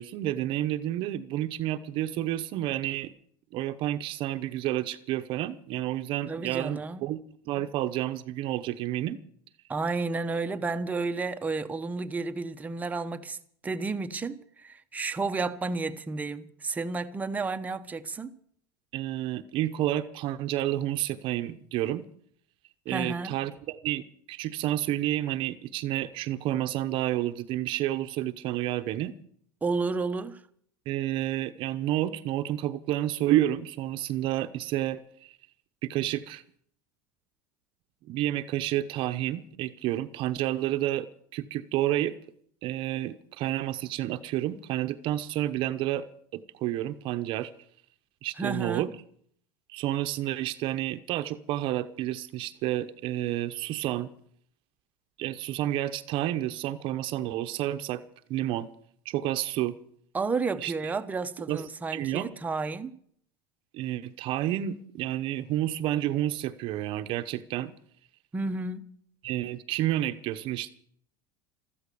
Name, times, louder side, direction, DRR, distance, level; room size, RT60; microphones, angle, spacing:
voice 1, 0.0-3.1 3.5-7.2 7.4-9.2 18.9-22.1 22.9-29.1 30.9-35.4 35.8-36.4 38.1-42.1 42.6-46.1 46.3-47.5 48.2-48.9 49.7-54.1 55.2-58.0 58.3-58.7 59.0-59.8 60.6-60.7 61.5-61.6 61.9-62.3 63.7-67.7 69.2-70.7, right 13 dB, 50° right, 0.9 m, -30 dB
voice 2, 6.3-7.1 9.7-13.4 13.6-18.4 22.9-23.4 29.6-30.4 48.4-48.9 60.1-63.0 68.3-68.9, right 3 dB, 15° right, 0.9 m, -31 dB
14.5 x 14.0 x 6.9 m
supercardioid pair, 140°, 11 cm